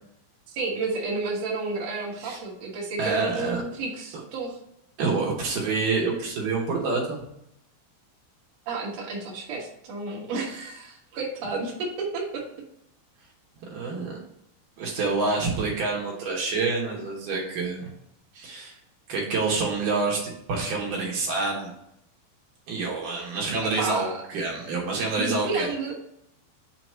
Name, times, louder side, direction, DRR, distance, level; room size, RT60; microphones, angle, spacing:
voice 1, 0.5-4.6 8.6-12.4 23.8-24.1 25.2-25.9, right 3 dB, 90° right, -3 dB, 1.4 m, -31 dB
voice 2, 3.0-3.6 4.1-4.2 5.0-7.2 13.7-14.2 14.8-17.9 18.3-18.7 19.1-21.7 22.7-25.7, right 3 dB, 70° right, -2 dB, 2.1 m, -27 dB
6.9 x 2.9 x 5.7 m, 0.76 s
omnidirectional pair, 5.4 m